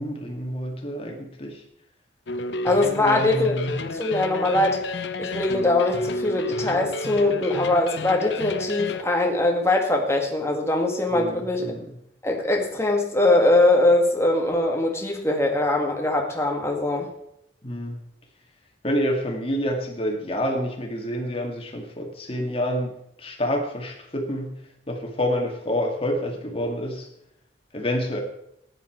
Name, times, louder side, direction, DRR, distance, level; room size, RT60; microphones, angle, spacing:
voice 1, 0.0-1.6 3.0-3.8 11.1-12.0 17.6-18.0 18.8-24.5 24.9-27.1 27.7-28.2, equal, 30° left, 2 dB, 2.2 m, -28 dB
sound 1, 2.3-9.0, left 1 dB, 80° left, 0.9 m, -30 dB
voice 2, 2.6-4.8 5.2-11.7 12.2-17.1, left 2 dB, 15° left, 1 dB, 1.8 m, -22 dB
15.0 x 10.0 x 4.5 m, 0.76 s
head